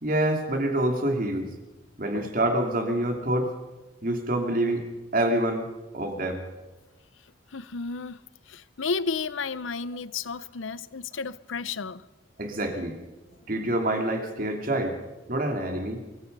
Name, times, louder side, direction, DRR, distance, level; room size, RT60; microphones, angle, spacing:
voice 1, 0.0-1.5 2.0-3.5 4.0-6.4 12.4-13.0 13.5-15.0 15.3-16.0, right 1 dB, 45° right, 2.9 m, -27 dB
voice 2, 7.5-8.2 8.5-12.0, left 4 dB, 90° left, 0.7 m, -32 dB
24.0 x 23.5 x 5.5 m
head